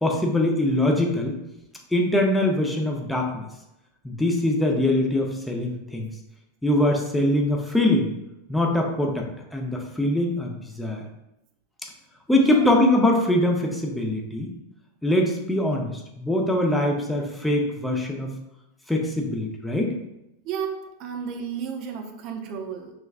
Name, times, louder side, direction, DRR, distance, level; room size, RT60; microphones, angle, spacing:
voice 1, 0.0-1.4 1.9-3.4 4.0-6.1 6.6-8.1 8.5-11.0 12.3-14.5 15.0-18.3 18.9-19.9, left 1 dB, 5° left, 0 dB, 0.5 m, -23 dB
voice 2, 20.5-22.9, right 7 dB, 40° right, 3 dB, 0.5 m, -32 dB
4.6 x 3.3 x 2.3 m, 0.88 s
supercardioid pair, 140°, 0 cm